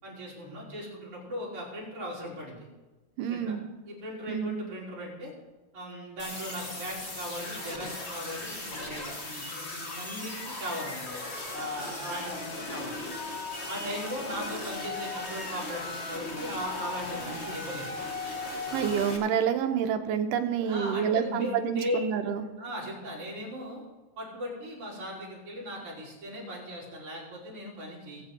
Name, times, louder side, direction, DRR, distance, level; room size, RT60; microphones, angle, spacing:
voice 1, 0.0-2.7 3.3-3.5 3.9-5.3 5.7-11.1 11.5-12.9 13.7-17.9 20.6-22.0 22.6-23.8 24.2-28.2, equal, 40° right, -5 dB, 4.5 m, -38 dB
voice 2, 3.2-3.6 4.3-4.5 18.7-22.4, right 8 dB, 80° right, 7 dB, 2.3 m, -28 dB
sound 1, 6.2-19.2, left 2 dB, 80° left, 0.6 m, -37 dB
20.0 x 8.3 x 3.8 m, 1.2 s
omnidirectional pair, 3.9 m